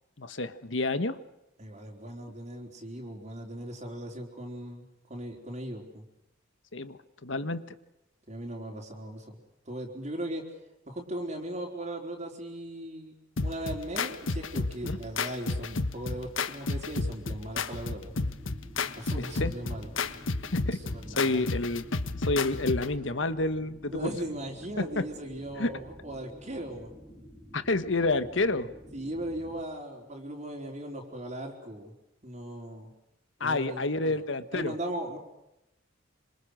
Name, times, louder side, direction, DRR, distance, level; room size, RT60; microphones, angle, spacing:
voice 1, 0.2-1.2 6.7-7.7 14.8-15.0 19.4-19.5 20.5-20.8 21.1-21.9 22.3-24.1 24.8-25.0 25.6-25.7 27.5-28.7 33.4-34.7, left 2 dB, 70° left, 11 dB, 1.5 m, -29 dB
voice 2, 1.6-6.0 8.3-9.4 9.7-10.4 10.9-18.1 19.0-19.9 20.7-21.5 23.8-26.9 28.9-31.9 32.2-32.9 33.4-34.2 34.5-35.2, right 1 dB, 35° right, 0 dB, 4.2 m, -38 dB
sound 1, 13.4-23.0, left 3 dB, 85° left, 1.4 m, -32 dB
sound 2, 18.0-29.6, equal, 5° right, 3.9 m, -50 dB
27.0 x 26.5 x 6.5 m, 0.89 s
head